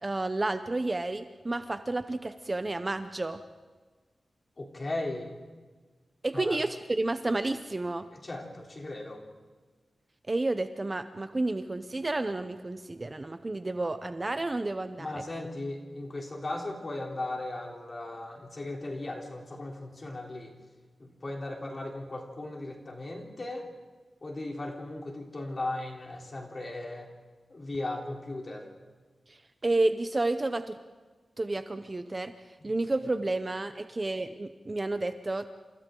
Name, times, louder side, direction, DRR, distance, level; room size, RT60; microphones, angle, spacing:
voice 1, 0.0-3.4 6.2-8.1 10.3-15.2 29.3-30.8 31.4-32.3 32.6-35.5, right 2 dB, 25° right, 9 dB, 0.7 m, -31 dB
voice 2, 4.6-5.3 6.3-6.6 8.1-9.2 15.0-20.5 21.0-23.7 24.2-27.1 27.5-28.7 32.6-32.7, left 2 dB, 30° left, 0 dB, 3.4 m, -37 dB
29.0 x 27.5 x 3.8 m, 1.3 s
wide cardioid pair, 160°, 0 cm